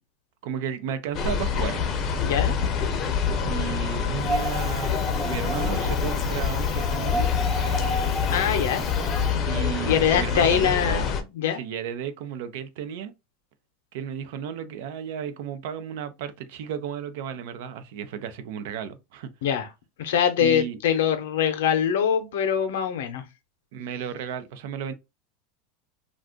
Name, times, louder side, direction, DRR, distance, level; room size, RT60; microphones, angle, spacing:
voice 1, 0.4-2.0 2.3-2.4 3.4-7.3 9.4-11.1 11.5-13.1 13.9-19.3 20.4-20.8 23.7-24.9, right 8 dB, 70° right, 0.5 m, -33 dB
sound 1, 1.1-11.2, left 6 dB, 35° left, 0.6 m, -26 dB
voice 2, 2.2-2.6 8.3-8.8 9.9-11.6 19.4-19.7 20.0-23.2, left 9 dB, 85° left, 0.7 m, -23 dB
Wind, 4.2-9.3, right 1 dB, 5° right, 0.6 m, -33 dB
2.4 x 2.3 x 3.6 m
supercardioid pair, 125°, 0 cm